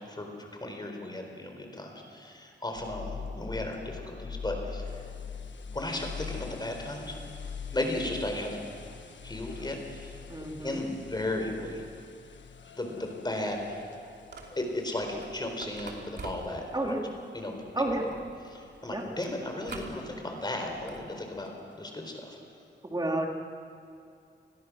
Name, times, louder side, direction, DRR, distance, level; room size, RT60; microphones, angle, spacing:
voice 1, 0.0-5.0 5.7-7.1 7.7-8.6 9.2-10.2 10.6-11.8 12.8-13.8 14.5-16.6 17.3-17.6 18.0-18.1 18.5-22.4, left 1 dB, 20° left, 3 dB, 4.0 m, -35 dB
sound 1, 2.7-17.6 18.1-18.2 18.8-18.9 21.5-21.6, left 6 dB, 75° left, 1.4 m, -43 dB
voice 2, 10.3-10.8 16.7-17.1 17.7-18.0 18.9-19.0 22.8-23.3, right 1 dB, 20° right, 1 dB, 2.8 m, -30 dB
sound 2, 14.3-21.1, right 3 dB, 60° right, 3.0 m, -48 dB
29.5 x 21.0 x 6.3 m, 2.5 s
wide cardioid pair, 135°, 19 cm